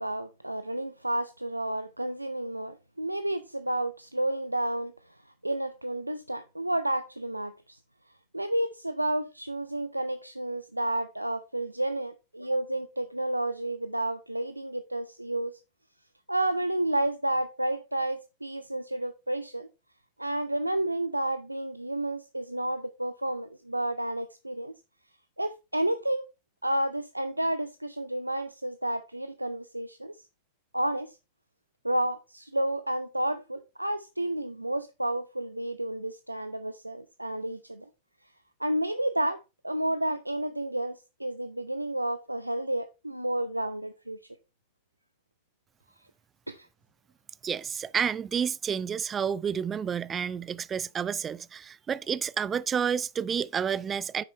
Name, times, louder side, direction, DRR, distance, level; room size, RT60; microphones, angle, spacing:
voice 1, 0.0-4.9 5.4-7.8 8.3-15.6 16.3-19.7 20.2-24.7 25.4-26.2 26.6-30.2 30.7-31.2 31.8-37.9 38.6-44.2 46.5-46.7, right 1 dB, 85° right, 0.4 m, -31 dB
voice 2, 47.4-54.2, right 7 dB, 20° right, 0.3 m, -30 dB
9.8 x 6.1 x 3.1 m
figure-of-eight pair, 90°, 0 cm